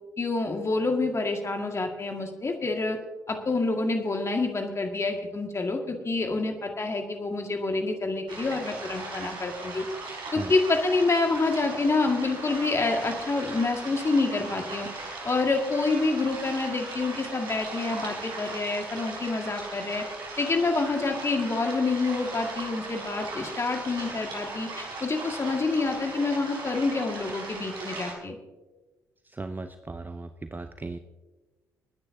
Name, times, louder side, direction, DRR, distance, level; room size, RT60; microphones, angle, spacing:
voice 1, 0.2-3.0 3.3-9.8 10.3-14.9 15.2-20.0 20.4-28.4, left 3 dB, 30° left, 3 dB, 1.9 m, -27 dB
sound 1, 8.3-28.1, right 3 dB, 60° right, 4.7 m, -38 dB
voice 2, 29.3-31.0, right 3 dB, 20° right, 8 dB, 0.7 m, -37 dB
29.5 x 9.9 x 2.7 m, 1.2 s
hypercardioid pair, 45°, 9 cm